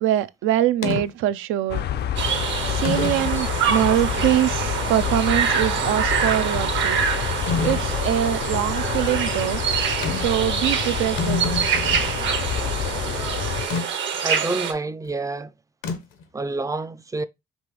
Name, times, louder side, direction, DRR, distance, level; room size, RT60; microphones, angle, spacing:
voice 1, 0.0-1.9 2.7-7.0 7.6-9.6 10.1-11.6, right 12 dB, 90° right, 0.4 m, -23 dB
sound 1, 0.8-1.1 2.0-2.1 2.8-3.4 4.0-4.1 7.5-7.9 10.0-10.4 10.7-10.8 11.0-12.1 13.7-13.9 15.8-16.2, left 5 dB, 85° left, 0.9 m, -27 dB
sound 2, 1.7-13.7, left 10 dB, 55° left, 0.4 m, -28 dB
sound 3, 2.2-14.7, right 7 dB, 70° right, 0.9 m, -25 dB
voice 2, 14.2-15.5 16.3-17.2, right 3 dB, 15° right, 0.3 m, -28 dB
5.3 x 2.9 x 3.1 m
cardioid pair, 90°, 20 cm